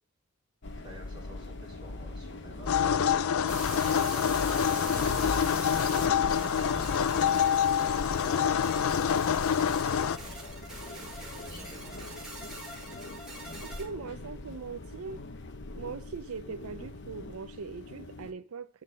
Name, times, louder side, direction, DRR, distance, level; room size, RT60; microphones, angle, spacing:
sound 1, 0.6-18.3, left 2 dB, 50° left, 0.8 m, -41 dB
voice 1, 0.7-7.5 8.2-10.4 10.9-12.3, right 1 dB, 20° right, 3.6 m, -50 dB
sound 2, 2.7-10.2, left 8 dB, 70° left, 0.4 m, -26 dB
sound 3, 3.5-13.8, right 1 dB, 5° right, 2.7 m, -43 dB
voice 2, 13.6-15.2 15.7-18.7, right 5 dB, 80° right, 0.5 m, -40 dB
11.5 x 3.9 x 6.4 m
head